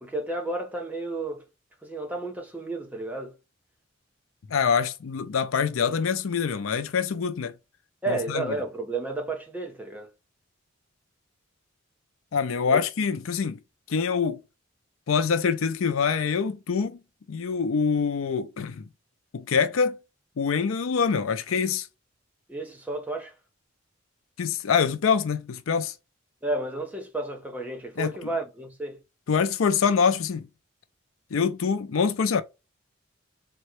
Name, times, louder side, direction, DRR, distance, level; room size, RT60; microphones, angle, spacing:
voice 1, 0.0-1.4 1.8-3.4 8.0-10.1 12.7-12.8 22.5-23.3 26.4-29.0, right 2 dB, 10° right, 0.6 m, -32 dB
voice 2, 4.5-7.6 8.1-8.5 12.3-13.6 13.9-14.4 15.1-17.0 17.3-18.9 19.3-20.0 20.4-21.9 24.4-25.9 28.0-28.3 29.3-30.5 31.3-32.4, left 6 dB, 90° left, 0.5 m, -25 dB
3.7 x 2.1 x 3.0 m
head